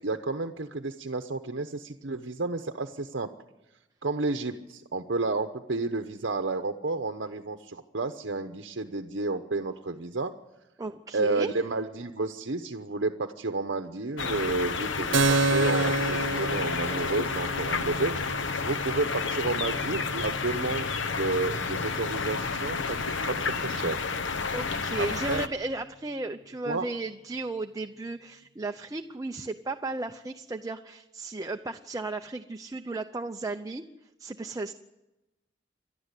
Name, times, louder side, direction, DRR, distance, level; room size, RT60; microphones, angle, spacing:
voice 1, 0.0-3.3 4.0-10.3 11.1-18.1 18.6-23.0 23.3-24.0 25.0-25.4 26.7-26.8, right 3 dB, 65° right, 7 dB, 0.9 m, -31 dB
voice 2, 10.8-11.5 24.5-33.8 34.2-34.7, right 2 dB, 20° right, 6 dB, 0.6 m, -34 dB
sound 1, 14.2-25.5, left 4 dB, 85° left, 1.1 m, -31 dB
Keyboard (musical), 15.1-22.4, right 2 dB, 90° right, 0.9 m, -31 dB
28.0 x 12.0 x 8.3 m, 1.0 s
head